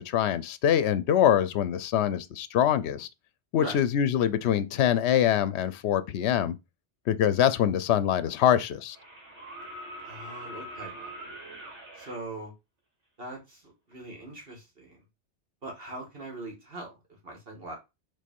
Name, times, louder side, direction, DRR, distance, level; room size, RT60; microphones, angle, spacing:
voice 1, 0.0-3.1 3.5-6.6 7.1-9.0, left 10 dB, 75° left, 0.9 m, -24 dB
sound 1, 7.8-7.9 8.9-12.1 13.9-14.0, right 1 dB, 80° right, 2.3 m, -43 dB
voice 2, 10.0-11.2 12.0-12.5 13.2-15.0 15.6-16.9 17.2-17.8, right 2 dB, 55° right, 2.2 m, -41 dB
5.3 x 3.6 x 5.3 m
omnidirectional pair, 1.2 m